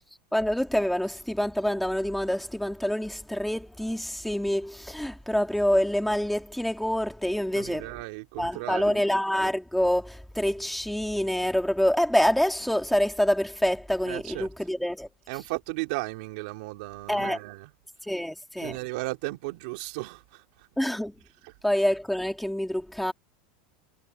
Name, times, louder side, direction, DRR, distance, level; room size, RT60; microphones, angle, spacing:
voice 1, 0.3-7.9 8.4-15.1 17.1-17.4 18.0-18.8 20.8-21.1 21.6-23.1, equal, ahead, 2.7 m, -26 dB
voice 2, 7.5-9.0 14.0-14.5 15.3-17.7 18.6-20.7 21.4-21.5, right 23 dB, 65° right, 3.2 m, -35 dB
supercardioid pair, 140°, 5 cm